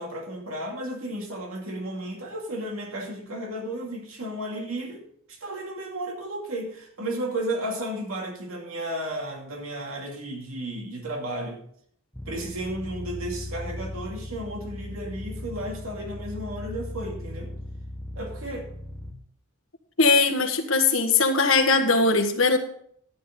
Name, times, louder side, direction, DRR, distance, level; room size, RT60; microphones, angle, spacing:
voice 1, 0.0-11.6 12.3-17.5 18.1-18.7, right 1 dB, 85° right, 1 dB, 2.5 m, -33 dB
sound 1, 12.1-19.1, left 1 dB, 10° left, 0.8 m, -37 dB
voice 2, 20.0-22.6, left 3 dB, 75° left, 6 dB, 1.4 m, -20 dB
13.0 x 9.4 x 3.7 m, 0.65 s
head